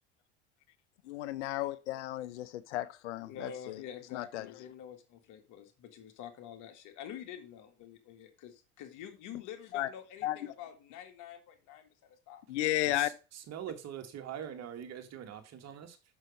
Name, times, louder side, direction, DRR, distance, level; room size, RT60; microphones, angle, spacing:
voice 1, 1.0-3.8 4.1-4.5 9.7-9.9 10.2-10.5 12.5-13.1, left 14 dB, 85° left, 0.6 m, -34 dB
voice 2, 3.2-12.4, left 9 dB, 60° left, 2.1 m, -47 dB
voice 3, 12.8-16.0, right 9 dB, 50° right, 2.0 m, -43 dB
6.4 x 6.2 x 5.4 m
hypercardioid pair, 85°, 34 cm